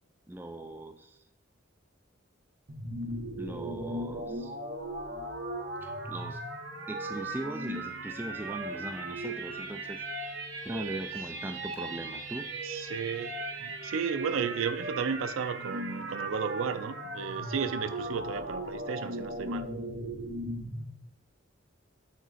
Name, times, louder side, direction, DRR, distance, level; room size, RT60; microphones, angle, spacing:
voice 1, 0.3-1.2 3.4-4.5 5.8-6.4 6.9-10.0 10.6-12.5, right 1 dB, 10° right, 0.4 m, -40 dB
sound 1, 2.7-20.8, right 2 dB, 60° right, 1.2 m, -37 dB
voice 2, 12.6-19.7, right 6 dB, 80° right, 0.4 m, -34 dB
9.2 x 3.9 x 4.1 m
head